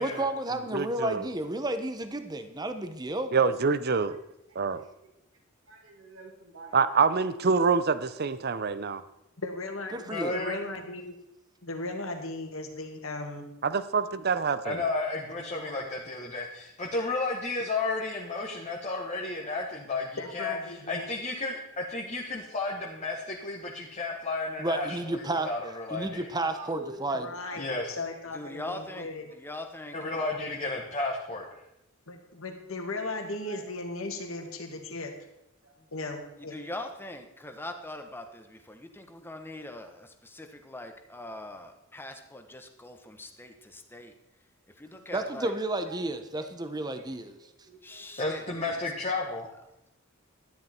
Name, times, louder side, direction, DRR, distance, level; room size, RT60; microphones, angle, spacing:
voice 1, 0.0-3.3 9.9-10.3 24.6-25.5 25.9-27.3 45.1-47.4, right 2 dB, 20° right, 8 dB, 0.9 m, -31 dB
voice 2, 0.7-1.3 3.3-4.2 4.6-4.8 6.7-9.0 13.6-14.8, right 5 dB, 50° right, 14 dB, 0.7 m, -26 dB
voice 3, 5.7-6.9 15.6-15.9 20.2-20.3 20.8-21.1 21.9-22.0 22.4-22.6 26.4-27.6 30.3-30.4 32.8-32.9 33.3-33.6 34.3-34.5 35.6-35.7 45.2-45.3 45.9-46.0 46.3-46.4 47.1-47.2 47.6-48.9, right 2 dB, 65° right, 2 dB, 2.2 m, -47 dB
voice 4, 9.4-11.2 11.6-13.5 20.2-21.1 27.1-29.2 32.1-35.1 35.9-36.5, left 2 dB, 70° left, 4 dB, 2.0 m, -37 dB
voice 5, 10.1-10.6 14.6-26.3 27.6-27.9 29.9-31.5 48.2-49.5, left 3 dB, 30° left, -2 dB, 1.5 m, -32 dB
voice 6, 28.3-30.0 36.5-44.1 44.7-45.5 47.8-48.5 48.7-49.1, left 1 dB, 10° left, 6 dB, 1.2 m, -42 dB
13.0 x 10.5 x 4.4 m, 0.86 s
head